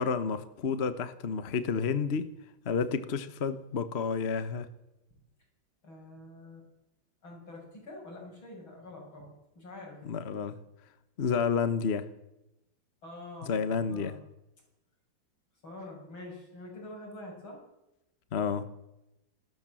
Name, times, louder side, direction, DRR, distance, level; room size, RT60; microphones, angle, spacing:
voice 1, 0.0-2.3 2.6-4.7 10.0-10.6 11.2-12.1 13.4-14.2 18.3-18.7, left 5 dB, 40° left, 1.2 m, -30 dB
voice 2, 5.8-6.7 7.2-10.0 13.0-13.5 13.9-14.2 15.6-17.6, left 1 dB, 90° left, 8.4 m, -46 dB
27.0 x 13.5 x 7.6 m
omnidirectional pair, 2.1 m